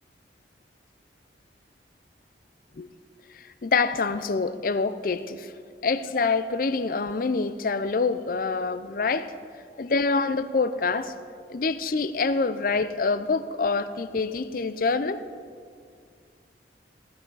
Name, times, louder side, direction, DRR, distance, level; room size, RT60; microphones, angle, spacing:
voice 1, 3.3-5.5 5.8-9.3 9.8-11.1 11.5-15.2, left 4 dB, 50° left, 13 dB, 0.5 m, -26 dB
15.0 x 12.5 x 4.0 m, 2.1 s
head